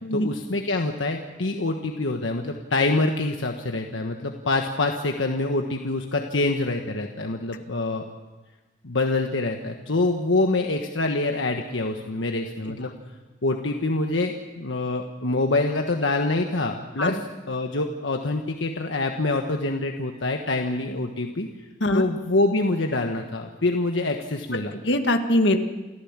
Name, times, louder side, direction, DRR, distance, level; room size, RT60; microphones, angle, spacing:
voice 1, 0.1-8.0 8.8-12.9 13.4-17.2 17.5-21.5 21.9-24.7, left 2 dB, 80° left, 3 dB, 1.3 m, -25 dB
voice 2, 24.7-25.6, left 1 dB, 65° left, 5 dB, 1.9 m, -22 dB
28.5 x 14.5 x 7.4 m, 1.2 s
head